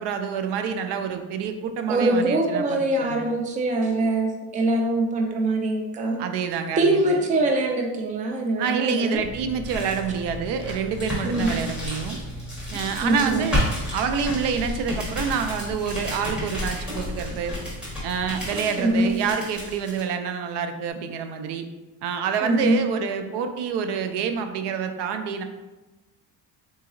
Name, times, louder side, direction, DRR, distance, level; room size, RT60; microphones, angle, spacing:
voice 1, 0.0-3.2 6.2-7.0 8.6-12.2 12.7-13.7 13.9-17.6 18.0-21.7 22.0-25.4, right 6 dB, 80° right, 7 dB, 0.5 m, -27 dB
voice 2, 1.9-6.2 6.8-9.2 11.2-11.5 13.0-13.5 18.8-19.1 22.4-22.8, right 2 dB, 20° right, 2 dB, 0.3 m, -23 dB
sound 1, 9.1-20.0, left 1 dB, ahead, 1.1 m, -31 dB
3.9 x 2.8 x 2.5 m, 1.1 s
cardioid pair, 140°, 40 cm